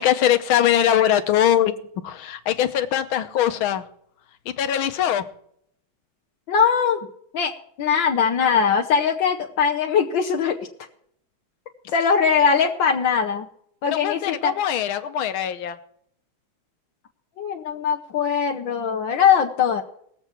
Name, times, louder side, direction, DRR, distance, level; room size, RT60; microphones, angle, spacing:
voice 1, 0.0-1.7 2.0-3.8 4.5-5.3 13.9-15.8, left 10 dB, 85° left, 10 dB, 1.7 m, -21 dB
voice 2, 6.5-7.0 7.3-7.5 7.8-10.6 11.9-13.5 13.8-14.5 17.4-19.8, left 6 dB, 70° left, 2 dB, 1.6 m, -21 dB
20.0 x 8.0 x 4.4 m, 0.67 s
omnidirectional pair, 2.2 m